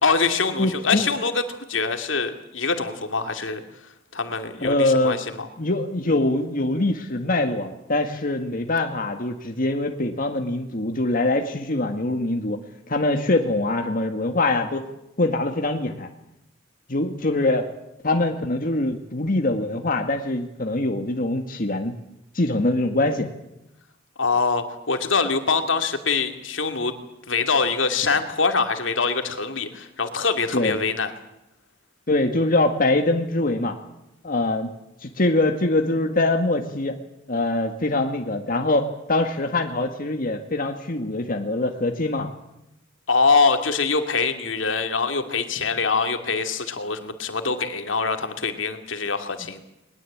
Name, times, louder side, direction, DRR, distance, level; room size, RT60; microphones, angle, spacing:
voice 1, 0.0-3.6 4.1-5.5 24.2-26.9 27.3-31.1 43.1-49.6, left 4 dB, 75° left, 7 dB, 2.6 m, -24 dB
voice 2, 0.6-1.1 4.6-5.2 5.6-12.6 12.9-14.8 15.2-16.1 16.9-17.7 18.0-22.0 22.3-23.3 30.5-30.8 32.1-33.8 34.2-34.7 35.0-37.0 37.3-42.3, left 2 dB, 45° left, 4 dB, 1.9 m, -23 dB
21.5 x 21.0 x 8.7 m, 0.86 s
head